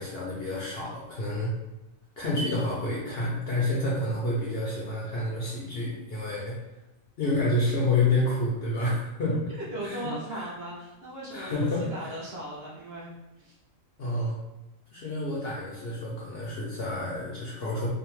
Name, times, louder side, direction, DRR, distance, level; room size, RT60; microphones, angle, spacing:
voice 1, 0.0-1.5 2.2-6.6 7.2-9.5 9.8-10.0 10.3-10.5 11.3-12.1 14.0-14.4 14.9-17.9, left 2 dB, 65° left, -5 dB, 0.6 m, -29 dB
voice 2, 9.5-13.6, right 1 dB, 60° right, -6 dB, 0.7 m, -38 dB
2.6 x 2.0 x 2.9 m, 0.98 s
omnidirectional pair, 1.4 m